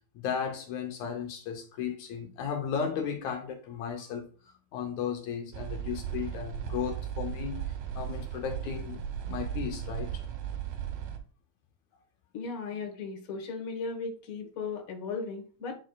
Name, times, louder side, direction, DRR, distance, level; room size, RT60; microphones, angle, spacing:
voice 1, 0.2-4.3 4.7-7.6 8.0-9.0 9.3-10.2, left 7 dB, 75° left, 1.9 m, -35 dB
sound 1, 5.5-11.2, right 9 dB, 85° right, 2.7 m, -36 dB
voice 2, 12.3-15.7, left 4 dB, 55° left, 1.0 m, -36 dB
10.0 x 4.8 x 2.3 m
omnidirectional pair, 3.9 m